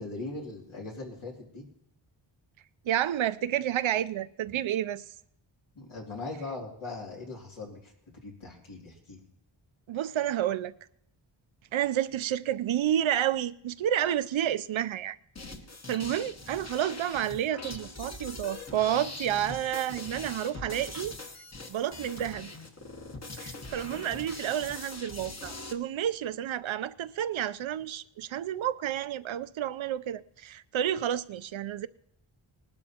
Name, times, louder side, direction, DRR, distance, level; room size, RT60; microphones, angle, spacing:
voice 1, 0.0-1.6 5.8-7.9 8.2-9.2, left 3 dB, 80° left, 2.8 m, -40 dB
voice 2, 2.9-5.0 9.9-10.7 11.7-15.2 15.9-21.1 21.7-22.5 23.4-31.9, right 11 dB, 75° right, 0.6 m, -30 dB
sound 1, 15.4-25.7, left 2 dB, 35° left, 1.1 m, -42 dB
20.0 x 12.0 x 2.9 m
wide cardioid pair, 130°, 48 cm